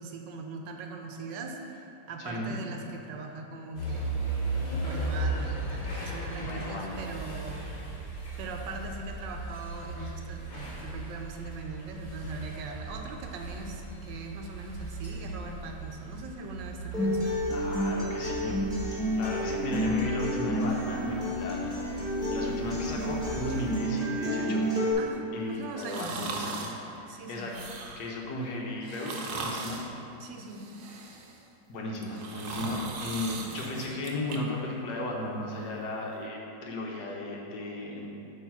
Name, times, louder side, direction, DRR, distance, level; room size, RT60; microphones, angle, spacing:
voice 1, 0.0-4.3 4.8-7.7 8.4-17.5 25.0-26.3 27.1-27.5 30.2-30.7, right 3 dB, 90° right, 3 dB, 1.4 m, -41 dB
voice 2, 2.2-2.5 6.4-7.0 10.0-10.1 17.5-18.6 18.8-24.6 25.3-27.5 28.0-29.8 31.7-38.1, left 2 dB, 70° left, -1 dB, 1.4 m, -35 dB
sound 1, 3.7-23.7, right 2 dB, 50° left, 2.1 m, -37 dB
Acoustic guitar, 16.9-24.9, equal, ahead, 1.4 m, -30 dB
sound 2, 25.8-26.8 27.4-28.1 28.8-29.9 30.5-31.4 31.9-34.4 34.8-34.9, right 3 dB, 70° right, 1.1 m, -38 dB
8.4 x 3.2 x 5.8 m, 2.7 s
omnidirectional pair, 1.9 m